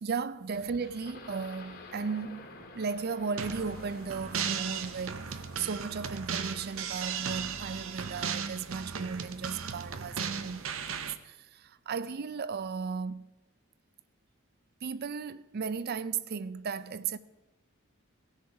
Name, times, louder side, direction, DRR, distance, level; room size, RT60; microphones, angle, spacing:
voice 1, 0.0-13.3 14.8-17.2, right 5 dB, 50° right, 0.5 m, -36 dB
sound 1, 0.5-6.8, left 3 dB, 55° left, 1.5 m, -50 dB
sound 2, 3.4-11.1, right 6 dB, 90° right, 0.8 m, -36 dB
17.5 x 6.6 x 4.8 m
head